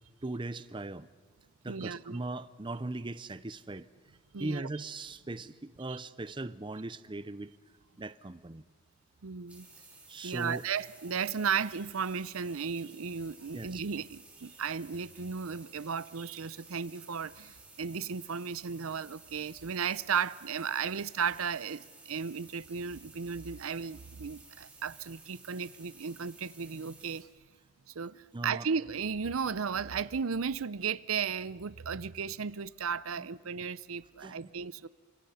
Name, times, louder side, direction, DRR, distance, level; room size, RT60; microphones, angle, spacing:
voice 1, 0.2-1.1 1.6-3.9 4.4-7.5 8.0-8.6 10.1-10.6 13.5-13.8 28.3-28.7 33.2-33.3 34.2-34.5, right 2 dB, 25° right, 0.7 m, -39 dB
voice 2, 1.7-2.2 4.3-4.7 5.9-6.0 9.2-9.7 10.2-27.3 27.9-34.9, right 6 dB, 85° right, 0.7 m, -35 dB
sound 1, 9.5-27.2, right 3 dB, 5° right, 4.6 m, -55 dB
29.5 x 26.5 x 5.7 m
head